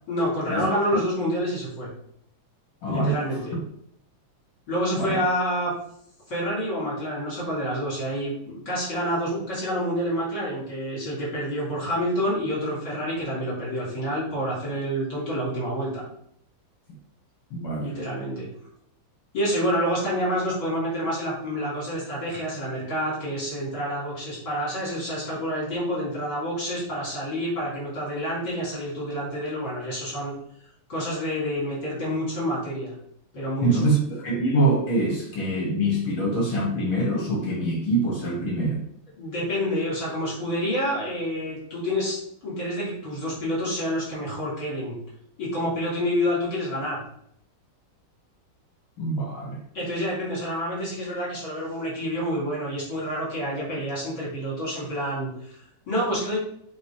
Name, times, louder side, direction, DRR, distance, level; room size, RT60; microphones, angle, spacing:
voice 1, 0.1-1.9 2.9-3.6 4.7-5.7 6.3-16.1 17.8-18.5 19.3-30.3 30.9-32.9 33.3-33.7 39.2-42.2 42.4-44.9 45.4-47.0 49.7-56.4, equal, 55° left, -6 dB, 4.1 m, -28 dB
voice 2, 2.8-3.2 5.0-5.2 17.5-17.9 33.6-38.9 49.0-49.6, right 1 dB, 75° left, -1 dB, 2.5 m, -24 dB
8.4 x 3.5 x 4.9 m, 0.71 s
omnidirectional pair, 2.2 m